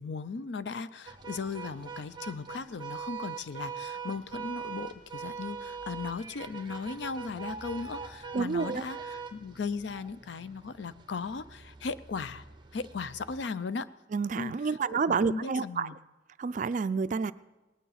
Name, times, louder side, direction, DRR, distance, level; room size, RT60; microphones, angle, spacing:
voice 1, 0.0-12.5 12.7-13.9 14.4-16.0, left 4 dB, 70° left, 15 dB, 0.5 m, -37 dB
sound 1, 1.1-13.4, right 6 dB, 25° right, 0.8 m, -42 dB
voice 2, 8.3-8.8 14.1-15.9 16.4-17.3, right 5 dB, 45° right, 15 dB, 0.4 m, -29 dB
19.0 x 9.4 x 5.7 m, 1.1 s
head